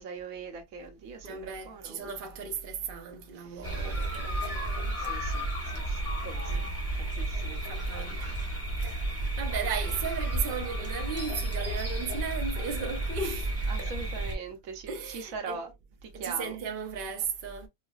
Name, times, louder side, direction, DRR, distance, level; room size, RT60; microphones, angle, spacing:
voice 1, 0.0-2.1 3.4-3.9 5.0-7.6 8.2-8.5 9.3-9.4 13.7-15.7 16.0-16.6, right 5 dB, 70° right, 1.1 m, -42 dB
voice 2, 1.2-5.0 6.5-6.8 7.7-8.3 8.8-13.9 14.9-15.6 16.1-17.7, right 6 dB, 50° right, 0.7 m, -36 dB
sound 1, 3.6-14.3, right 1 dB, 10° right, 0.8 m, -32 dB
4.5 x 2.1 x 2.3 m
omnidirectional pair, 1.6 m